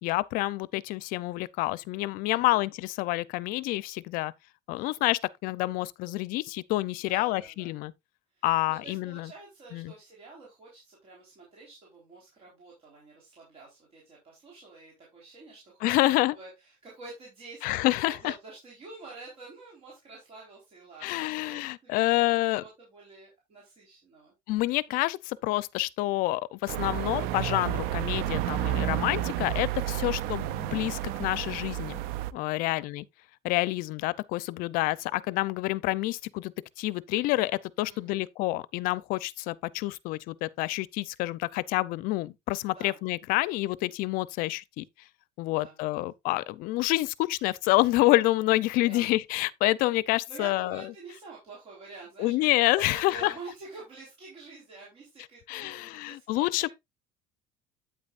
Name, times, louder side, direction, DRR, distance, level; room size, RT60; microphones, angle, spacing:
voice 1, 0.0-4.3 4.7-7.9 8.4-9.3 9.7-9.9 15.8-16.4 17.6-18.3 21.0-22.6 24.5-32.0 32.3-33.0 33.4-44.8 45.4-50.8 52.2-53.3 55.5-56.7, left 19 dB, 65° left, 0.5 m, -28 dB
voice 2, 2.2-2.6 4.7-5.0 7.0-7.7 8.3-24.3 32.5-32.8 37.8-38.3 42.7-43.0 43.3-43.6 45.5-45.8 48.7-49.1 50.3-56.7, right 3 dB, 35° right, 3.9 m, -48 dB
sound 1, 26.7-32.3, right 14 dB, 75° right, 0.5 m, -31 dB
8.7 x 8.6 x 2.5 m
cardioid pair, 160°, 16 cm